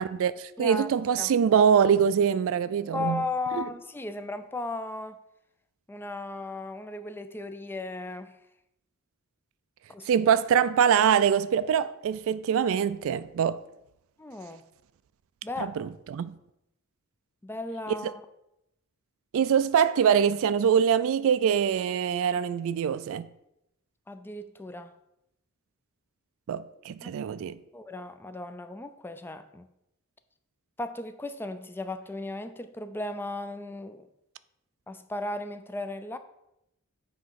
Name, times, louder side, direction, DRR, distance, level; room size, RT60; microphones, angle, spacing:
voice 1, 0.0-3.2 3.5-3.7 10.1-13.6 15.6-16.3 17.9-18.0 19.3-23.3 26.5-27.6, right 8 dB, 65° right, 0.3 m, -24 dB
voice 2, 0.6-1.3 2.9-5.2 5.9-8.4 9.9-10.3 14.2-14.6 15.4-15.8 17.4-18.2 24.1-24.9 27.0-27.1 27.7-29.7 30.8-34.1 34.9-36.2, left 2 dB, 10° left, 0.3 m, -36 dB
7.5 x 3.0 x 5.6 m
head